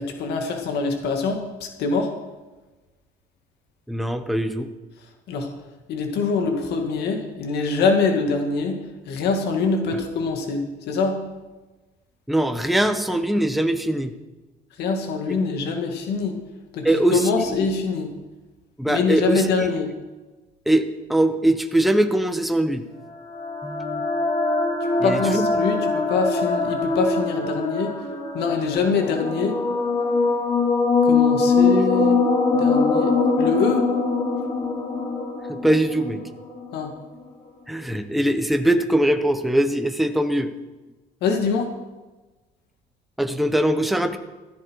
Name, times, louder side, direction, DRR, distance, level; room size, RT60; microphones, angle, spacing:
voice 1, 0.0-1.4 1.8-2.1 5.3-5.5 5.9-8.8 9.1-11.2 14.8-16.3 16.7-18.1 18.9-19.9 25.0-27.9 28.3-29.6 31.0-32.2 32.5-33.1 33.4-33.9 36.7-36.9 41.2-41.7, left 4 dB, 75° left, 4 dB, 2.2 m, -24 dB
voice 2, 3.9-4.7 12.3-14.1 16.8-17.3 18.8-19.7 20.7-20.8 21.1-22.8 23.6-24.0 25.0-25.5 35.5-36.2 37.7-40.5 43.2-44.2, right 1 dB, ahead, 7 dB, 1.0 m, -21 dB
sound 1, 23.1-36.7, left 3 dB, 35° left, 2.8 m, -22 dB
15.0 x 12.0 x 4.8 m, 1.2 s
cardioid pair, 110°, 17 cm